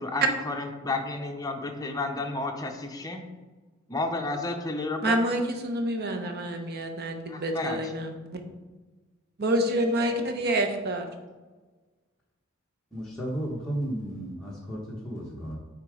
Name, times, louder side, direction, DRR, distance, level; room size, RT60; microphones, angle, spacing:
voice 1, 0.0-3.2 3.9-5.2 7.3-7.9, left 3 dB, 20° left, 4 dB, 0.7 m, -31 dB
voice 2, 5.0-8.1 9.4-11.1, right 1 dB, 50° right, 5 dB, 0.8 m, -27 dB
voice 3, 12.9-15.6, right 1 dB, 5° left, -6 dB, 1.1 m, -33 dB
7.2 x 3.8 x 4.9 m, 1.3 s
head